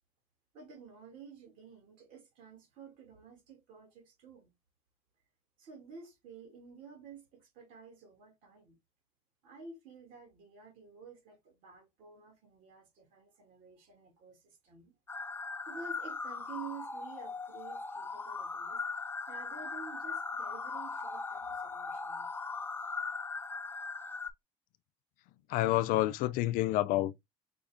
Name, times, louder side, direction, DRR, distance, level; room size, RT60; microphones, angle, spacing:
voice 1, 0.5-4.5 5.6-8.8 9.4-14.9 15.7-18.8 19.3-22.3, right 5 dB, 75° right, 1.9 m, -51 dB
sound 1, 15.1-24.3, left 4 dB, 15° left, 0.5 m, -39 dB
voice 2, 25.5-27.1, left 15 dB, 80° left, 0.4 m, -28 dB
5.2 x 2.4 x 3.4 m
supercardioid pair, 85°, 14 cm